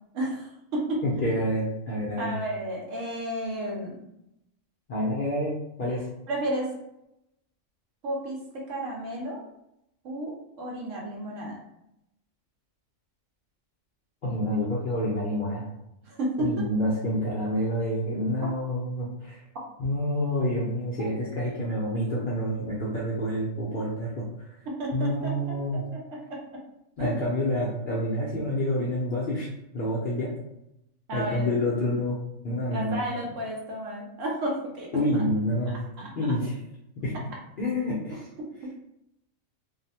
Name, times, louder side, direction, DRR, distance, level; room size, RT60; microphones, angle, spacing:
voice 1, 0.1-1.0 2.2-4.0 6.3-6.7 8.0-9.4 10.0-11.6 16.0-16.5 18.4-18.5 24.8-26.4 27.0-27.1 31.1-31.5 32.7-34.9 36.0-36.1 38.1-38.2 38.6-38.8, right 1 dB, 70° right, -2 dB, 1.0 m, -32 dB
voice 2, 1.0-2.3 4.9-6.0 14.2-15.6 16.4-19.4 19.8-24.3 24.9-25.8 27.0-29.5 29.7-30.3 31.1-32.1 32.4-33.0 34.9-35.8 36.1-36.5 37.0-37.1 37.6-38.2, left 1 dB, 60° left, -6 dB, 0.5 m, -28 dB
2.6 x 2.0 x 2.7 m, 0.83 s
omnidirectional pair, 1.4 m